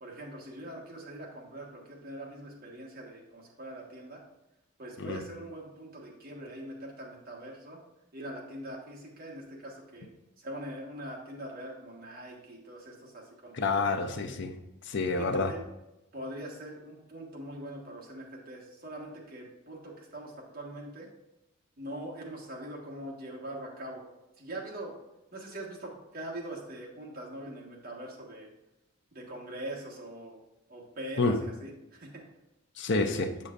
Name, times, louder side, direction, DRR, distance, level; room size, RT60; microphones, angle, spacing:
voice 1, 0.0-4.2 4.8-7.8 8.1-10.1 10.4-14.0 15.2-15.6 16.1-21.1 21.8-24.1 24.4-25.0 25.3-28.5 29.1-30.4 30.7-32.2, right 1 dB, 45° right, -2 dB, 1.4 m, -42 dB
voice 2, 13.5-14.5 14.9-15.5 31.2-31.4 32.8-33.3, left 3 dB, 55° left, 6 dB, 0.6 m, -28 dB
6.9 x 6.5 x 2.5 m, 0.92 s
head